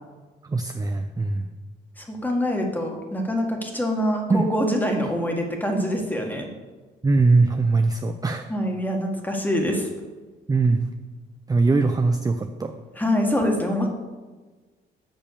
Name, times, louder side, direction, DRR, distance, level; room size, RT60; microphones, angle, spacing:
voice 1, 0.5-1.5 4.3-4.5 7.0-8.5 10.5-10.9 11.5-12.7, right 3 dB, 20° right, 6 dB, 0.5 m, -21 dB
voice 2, 2.0-6.5 8.5-9.9 13.0-13.9, equal, 10° left, 2 dB, 1.7 m, -25 dB
7.2 x 5.5 x 6.7 m, 1.3 s
cardioid pair, 90°, 20 cm